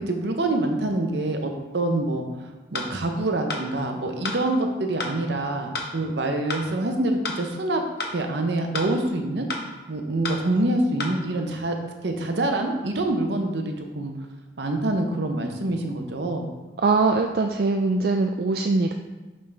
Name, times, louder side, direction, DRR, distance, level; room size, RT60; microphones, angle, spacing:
voice 1, 0.0-7.8 8.1-9.5 9.9-11.8 12.0-14.1 14.6-16.5, right 2 dB, 75° right, 4 dB, 0.8 m, -26 dB
sound 1, 2.7-2.9 3.5-3.6 4.2-4.4 5.0-5.2 5.7-5.9 6.5-6.7 7.2-7.4 8.0-8.2 8.7-8.9 9.5-9.6 10.2-10.4 11.0-11.1, left 3 dB, 60° left, 0.7 m, -30 dB
voice 2, 16.8-18.9, right 3 dB, 55° right, 3 dB, 0.3 m, -22 dB
5.4 x 5.4 x 3.5 m, 1.2 s
head